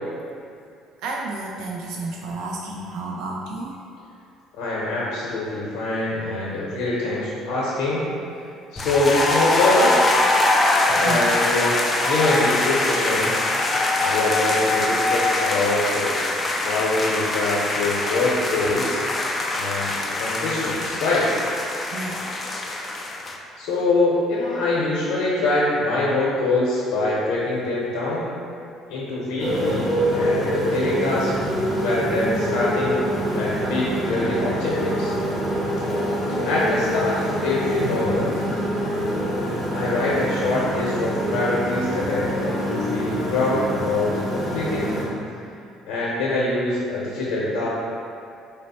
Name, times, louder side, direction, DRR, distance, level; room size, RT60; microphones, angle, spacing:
voice 1, 1.0-3.8 11.0-11.2 21.9-22.3, right 2 dB, 75° right, -1 dB, 0.3 m, -31 dB
voice 2, 4.6-8.1 8.7-10.0 11.0-11.8 12.1-13.4 14.0-16.1 16.6-19.0 19.5-21.3 23.6-28.3 28.9-31.3 31.8-33.0 33.3-35.1 36.3-38.3 39.7-44.9 45.8-47.7, left 2 dB, 85° left, -6 dB, 0.7 m, -24 dB
sound 1, 8.8-23.4, left 2 dB, 25° left, 0.3 m, -23 dB
Motorcycle, 29.4-45.1, equal, ahead, 0.9 m, -25 dB
3.9 x 2.0 x 4.1 m, 2.5 s
cardioid pair, 120°, 0 cm